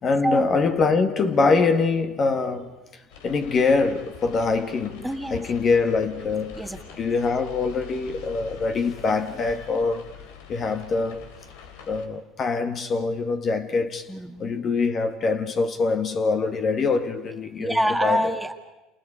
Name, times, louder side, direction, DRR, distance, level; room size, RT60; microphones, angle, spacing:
voice 1, 0.0-6.6 7.0-10.1 10.5-11.2 11.9-14.1 14.4-18.2, left 4 dB, 40° left, 1.9 m, -24 dB
sound 1, 3.1-12.1, left 7 dB, 80° left, 3.0 m, -44 dB
voice 2, 5.0-5.5 6.5-6.8 14.1-14.5 17.6-18.5, equal, 5° right, 2.1 m, -26 dB
29.5 x 28.0 x 5.0 m
supercardioid pair, 105°, 0 cm